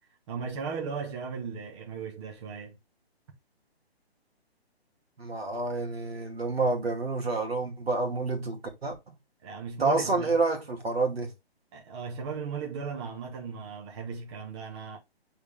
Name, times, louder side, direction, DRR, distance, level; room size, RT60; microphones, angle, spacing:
voice 1, 0.3-2.8 9.4-10.4 11.7-15.0, right 6 dB, 25° right, 1.2 m, -36 dB
voice 2, 5.2-8.9 9.8-11.3, right 3 dB, 70° right, 2.1 m, -28 dB
7.9 x 3.7 x 3.3 m
figure-of-eight pair, 140°, 32 cm